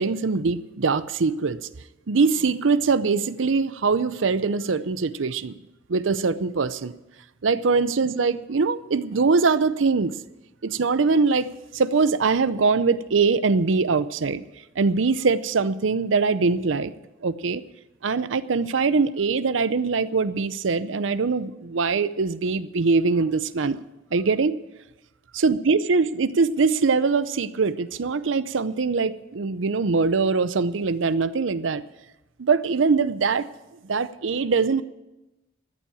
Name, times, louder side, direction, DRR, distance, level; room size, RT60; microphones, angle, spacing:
voice 1, 0.0-1.7 2.1-5.5 5.9-6.9 7.4-10.2 10.6-14.4 14.8-16.9 17.2-17.6 18.0-23.8 24.1-24.6 25.3-31.8 32.4-33.5 33.9-34.8, right 4 dB, 80° right, 15 dB, 0.6 m, -22 dB
13.5 x 8.4 x 8.6 m, 0.99 s
head